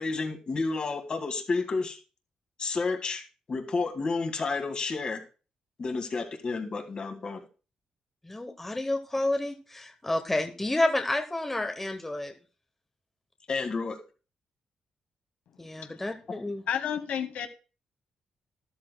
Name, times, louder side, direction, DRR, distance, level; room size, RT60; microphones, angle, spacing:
voice 1, 0.0-2.0 2.6-3.2 3.5-5.2 5.8-7.4 13.5-14.0, left 4 dB, 35° left, 1.7 m, -30 dB
voice 2, 8.2-12.3 15.6-16.6, left 1 dB, 10° left, 0.9 m, -30 dB
voice 3, 16.7-17.5, left 9 dB, 90° left, 1.1 m, -31 dB
13.0 x 13.0 x 2.2 m
cardioid pair, 145°, 2 cm